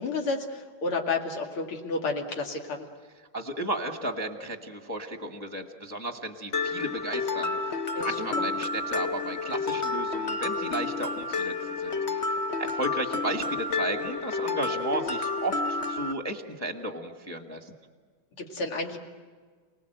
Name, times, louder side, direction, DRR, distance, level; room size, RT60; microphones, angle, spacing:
voice 1, 0.0-2.9 7.9-8.5 18.4-19.0, left 3 dB, 85° left, 2 dB, 3.1 m, -31 dB
voice 2, 3.3-7.6 8.0-11.5 11.8-12.3 12.6-17.7, right 2 dB, 10° left, 4 dB, 1.3 m, -34 dB
Mallet percussion, 6.5-16.1, left 3 dB, 55° left, 0.7 m, -30 dB
29.5 x 19.5 x 7.9 m, 1.5 s
omnidirectional pair, 2.3 m